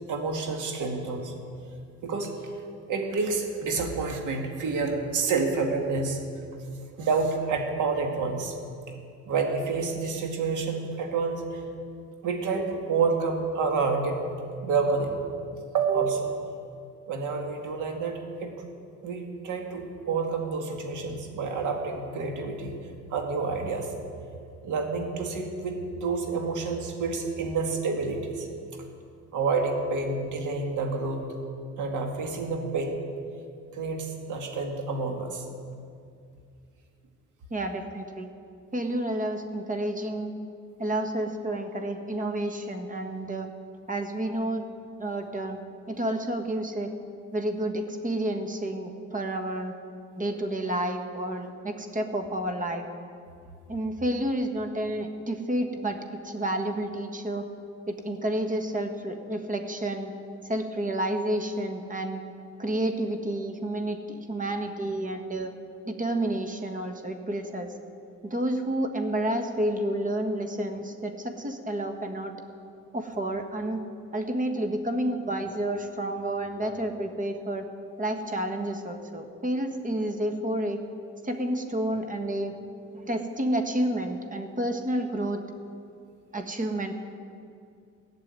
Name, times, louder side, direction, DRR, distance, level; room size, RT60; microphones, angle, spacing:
voice 1, 0.1-1.3 2.0-2.3 2.9-6.2 7.0-8.6 9.3-11.6 12.2-14.2 14.6-15.2 15.7-16.3 17.1-18.5 19.0-22.8 23.1-23.9 24.6-28.5 29.3-31.2 31.8-33.0 33.7-35.5, right 4 dB, 80° right, 3 dB, 2.1 m, -28 dB
voice 2, 37.5-38.3 38.7-40.3 40.8-43.5 43.9-44.6 45.0-45.6 45.9-46.9 47.3-49.7 50.2-52.8 53.7-56.0 56.2-57.5 57.9-60.1 60.4-62.2 62.6-65.5 65.9-67.7 68.2-72.3 72.9-73.8 74.1-77.6 78.0-80.8 81.2-82.5 82.9-85.4 86.3-86.9, right 1 dB, 25° right, 5 dB, 1.6 m, -30 dB
16.5 x 7.0 x 9.7 m, 2.4 s
cardioid pair, 90°, 30 cm